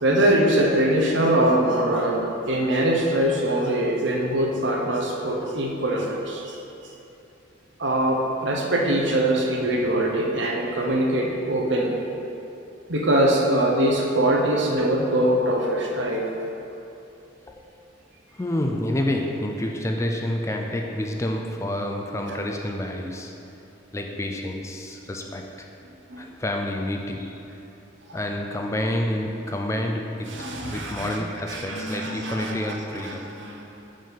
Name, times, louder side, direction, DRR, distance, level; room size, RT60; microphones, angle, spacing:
voice 1, 0.0-6.5 7.8-12.0 12.9-16.3 26.1-26.2 30.3-31.2 31.5-33.6, right 1 dB, 65° right, 0 dB, 0.9 m, -23 dB
voice 2, 18.3-23.4 23.9-25.7 26.2-27.4 28.1-33.3, left 1 dB, 15° left, 2 dB, 0.3 m, -29 dB
5.4 x 5.2 x 5.7 m, 2.8 s
head